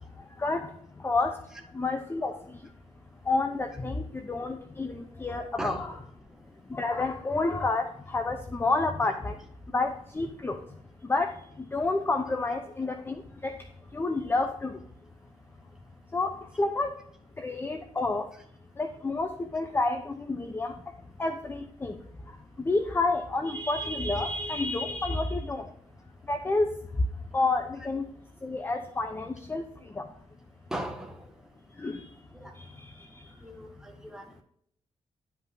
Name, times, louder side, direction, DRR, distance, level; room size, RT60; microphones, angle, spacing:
voice 1, 1.7-2.3 3.3-5.9 6.7-9.3 9.7-10.6 11.1-11.3 11.7-13.1 13.4-13.5 13.9-14.7 16.1-16.9 17.4-18.3 18.8-20.7 21.2-21.9 22.6-25.6 26.3-26.7 27.3-28.0 28.4-29.6 30.0-30.1 31.8-32.0, left 3 dB, 20° left, 6 dB, 0.6 m, -29 dB
voice 2, 5.6-6.0 30.7-31.2 32.3-32.5 33.4-34.4, right 1 dB, 5° right, 1 dB, 1.5 m, -38 dB
11.5 x 5.2 x 2.6 m, 0.67 s
wide cardioid pair, 140°, 12 cm